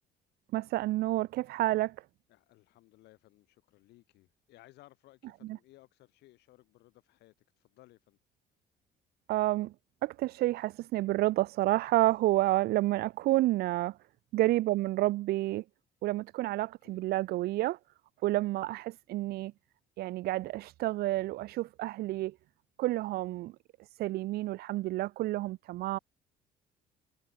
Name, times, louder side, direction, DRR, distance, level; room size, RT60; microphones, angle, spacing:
voice 1, 0.5-2.0 5.5-5.6 9.3-9.7 10.0-14.0 14.3-15.6 16.0-17.8 18.2-19.5 20.0-22.3 22.8-23.5 24.0-26.0, right 17 dB, 65° right, 0.4 m, -29 dB
voice 2, 2.3-8.2 14.4-14.6 16.8-17.0, left 17 dB, 85° left, 5.0 m, -60 dB
cardioid pair, 110°, 17 cm